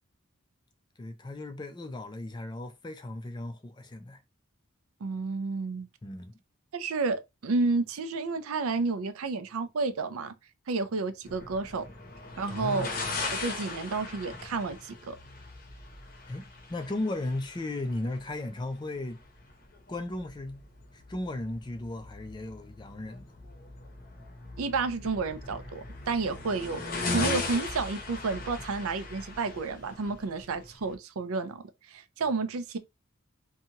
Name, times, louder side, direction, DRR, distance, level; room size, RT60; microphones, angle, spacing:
voice 1, 1.0-4.2 6.0-6.3 12.5-12.9 16.2-19.2 19.9-20.7 20.9-23.3, left 2 dB, 20° left, 0.4 m, -36 dB
voice 2, 5.0-5.9 6.7-10.3 10.7-11.9 12.4-12.9 13.3-15.2 24.6-32.8, right 4 dB, 85° right, 0.5 m, -31 dB
sound 1, 11.2-30.9, left 3 dB, 45° left, 0.7 m, -39 dB
2.7 x 2.3 x 2.8 m
head